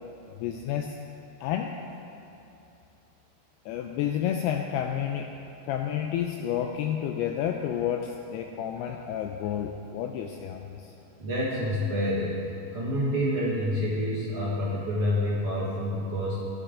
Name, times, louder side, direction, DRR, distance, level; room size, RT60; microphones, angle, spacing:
voice 1, 0.4-1.0 1.4-1.8 3.7-5.3 5.7-10.9, left 9 dB, 85° left, 4 dB, 2.3 m, -30 dB
voice 2, 11.2-12.4 12.7-16.5, equal, 50° right, -8 dB, 1.8 m, -28 dB
15.0 x 12.0 x 3.7 m, 2.9 s
omnidirectional pair, 5.0 m